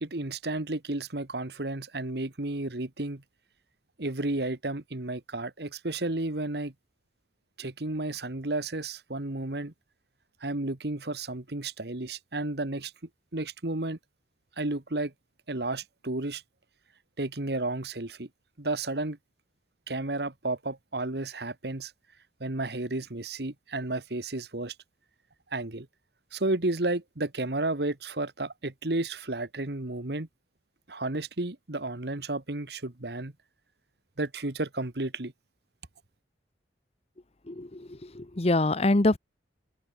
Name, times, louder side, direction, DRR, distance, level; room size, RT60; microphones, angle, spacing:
voice 1, 0.0-3.2 4.0-6.7 7.6-9.7 10.4-12.9 13.3-14.0 14.6-15.1 15.5-16.4 17.2-18.3 18.6-19.2 19.9-21.9 22.4-24.7 25.5-25.9 26.3-30.3 30.9-33.3 34.2-35.3, right 2 dB, 60° right, 1.7 m, -32 dB
voice 2, 37.5-39.2, left 2 dB, 35° left, 1.0 m, -25 dB
head